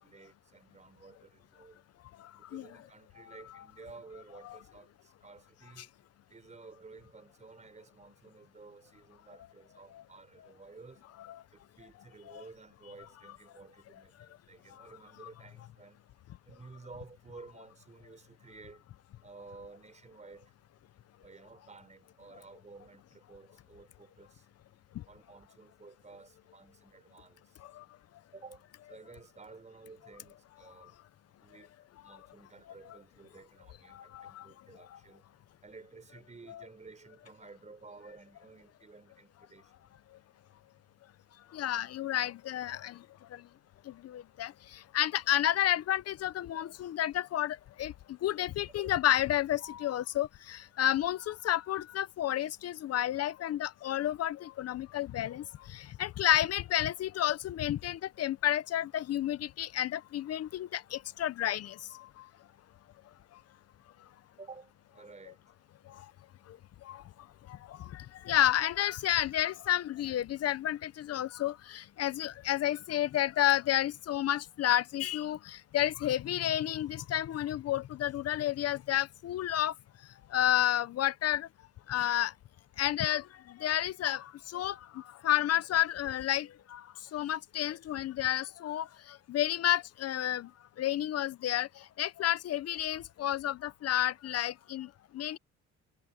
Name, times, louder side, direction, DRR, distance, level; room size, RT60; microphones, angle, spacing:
voice 1, 0.0-1.8 2.3-5.9 6.3-11.0 11.8-16.0 16.5-18.8 19.2-20.5 21.2-24.5 25.1-27.6 28.3-31.0 31.4-31.7 32.0-35.2 35.6-39.7 48.8-48.9 64.4-65.4, right 4 dB, 25° right, 5.5 m, -53 dB
voice 2, 33.9-34.5 36.5-36.6 41.5-43.0 43.3-43.4 43.9-44.5 44.9-47.9 48.2-62.1 66.8-67.0 67.7-79.7 80.3-81.5 81.9-82.3 82.8-86.8 87.1-90.5 90.8-91.7 92.0-94.9 95.1-95.4, left 12 dB, 55° left, 0.8 m, -31 dB
cardioid pair, 105°, 30 cm